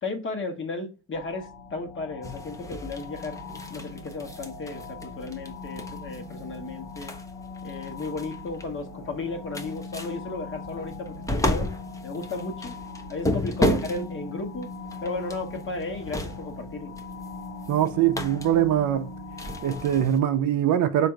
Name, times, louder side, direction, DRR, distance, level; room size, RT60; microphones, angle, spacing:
voice 1, 0.0-3.4 3.7-7.1 7.6-11.7 12.0-12.8 13.1-14.7 15.0-16.9, left 3 dB, 35° left, 1.1 m, -34 dB
sound 1, 1.1-20.1, left 3 dB, 50° left, 0.8 m, -40 dB
sound 2, 2.2-20.2, left 1 dB, 10° left, 0.6 m, -34 dB
voice 2, 17.7-19.1 19.6-21.1, right 11 dB, 55° right, 0.6 m, -23 dB
3.6 x 2.6 x 4.5 m
supercardioid pair, 85°, 36 cm